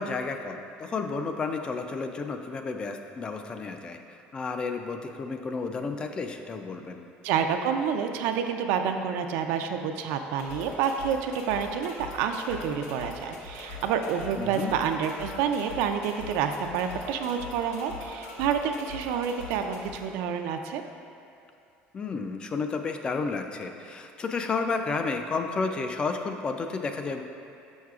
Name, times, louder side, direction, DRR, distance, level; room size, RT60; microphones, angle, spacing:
voice 1, 0.0-4.0 4.3-7.0 14.4-14.7 21.9-27.2, left 4 dB, 25° left, 6 dB, 0.3 m, -31 dB
voice 2, 7.2-20.8, right 7 dB, 80° right, 6 dB, 0.4 m, -28 dB
sound 1, 10.4-20.0, left 2 dB, 75° left, 1.0 m, -42 dB
6.4 x 6.2 x 2.4 m, 2.6 s
cardioid pair, 145°, 4 cm